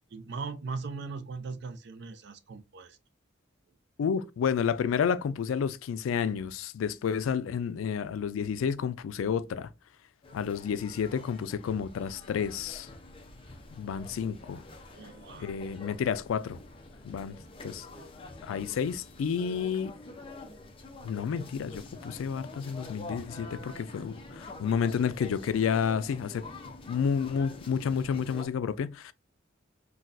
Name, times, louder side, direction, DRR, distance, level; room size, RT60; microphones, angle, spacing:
voice 1, 0.1-3.0 14.9-15.5, right 4 dB, 60° right, 0.5 m, -39 dB
voice 2, 4.0-9.7 10.3-12.9 13.7-14.6 15.4-16.6 17.0-17.4 17.6-17.9 18.4-19.9 21.0-26.4 26.9-29.1, left 7 dB, 90° left, 0.3 m, -30 dB
sound 1, 10.2-28.5, left 2 dB, 25° left, 0.5 m, -46 dB
4.0 x 2.3 x 2.5 m
head